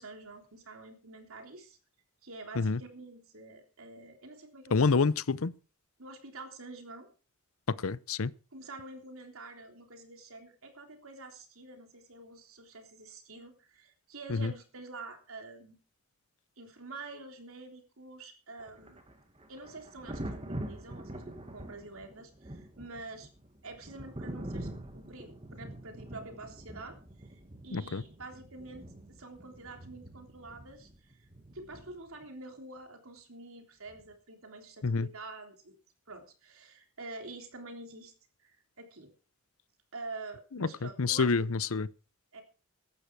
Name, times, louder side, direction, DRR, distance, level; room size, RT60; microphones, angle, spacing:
voice 1, 0.0-1.8 2.2-4.9 6.0-7.1 8.5-15.8 16.6-19.0 19.5-23.3 23.6-31.3 31.5-35.7 36.1-38.1 38.4-39.1 39.9-41.3 42.3-42.4, right 3 dB, 70° right, 3.5 m, -47 dB
voice 2, 4.7-5.5 7.7-8.3 14.3-14.5 27.7-28.0 34.8-35.1 40.8-41.9, left 4 dB, 70° left, 0.7 m, -28 dB
Thunder, 18.6-32.3 33.9-34.1, right 1 dB, 25° right, 1.9 m, -45 dB
15.5 x 12.0 x 4.7 m
head